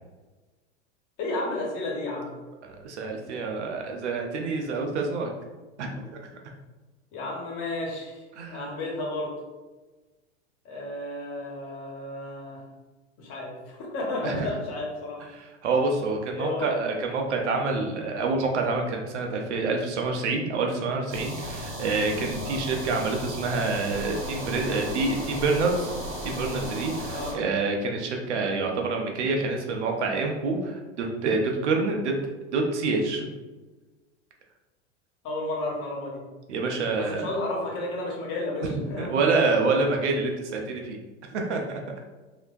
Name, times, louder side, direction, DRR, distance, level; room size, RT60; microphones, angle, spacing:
voice 1, 1.2-2.3 7.1-8.2 8.5-9.3 10.6-12.6 13.2-15.2 16.3-16.7 22.4-22.6 27.1-27.3 35.2-36.2 37.0-39.1, left 2 dB, 45° left, -2 dB, 1.3 m, -32 dB
voice 2, 2.6-5.3 5.8-5.9 8.4-8.7 14.2-14.5 15.3-25.9 26.2-32.1 32.5-33.2 36.5-37.4 38.6-41.0 41.3-41.8, right 3 dB, 80° right, 2 dB, 0.7 m, -27 dB
sound 1, 21.1-27.3, equal, 55° right, 1.4 m, -35 dB
3.3 x 2.8 x 2.5 m, 1.2 s
hypercardioid pair, 100°, 35 cm